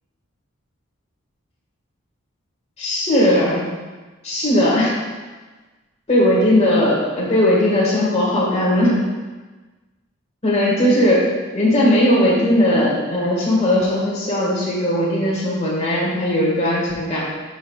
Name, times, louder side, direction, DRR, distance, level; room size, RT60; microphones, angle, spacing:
voice 1, 2.8-3.7 4.2-4.9 6.1-8.9 10.4-11.3 11.5-17.3, left 1 dB, 30° left, -6 dB, 1.7 m, -18 dB
12.0 x 5.5 x 2.3 m, 1.3 s
head